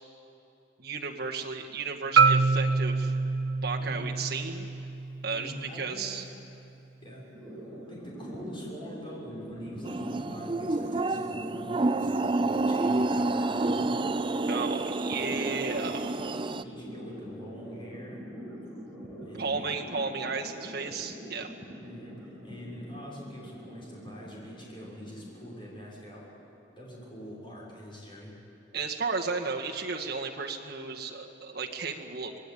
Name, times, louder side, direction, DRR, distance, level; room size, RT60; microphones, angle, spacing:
voice 1, 0.8-3.1 3.6-4.7 5.2-6.2 14.5-16.1 19.3-21.5 28.7-32.4, right 4 dB, 55° right, 1 dB, 1.9 m, -34 dB
Marimba xylophone, 2.2-6.3, right 4 dB, 85° right, 0.8 m, -26 dB
voice 2, 3.8-4.1 5.3-6.1 7.0-7.2 7.9-13.9 16.6-18.2 19.2-19.7 21.8-26.3 26.8-28.3, equal, 25° left, -4 dB, 6.3 m, -44 dB
sound 1, 7.3-26.8, equal, 5° left, 7.3 m, -44 dB
sound 2, 9.8-16.6, right 2 dB, 25° right, 0.5 m, -29 dB
25.0 x 20.0 x 8.8 m, 2.7 s
head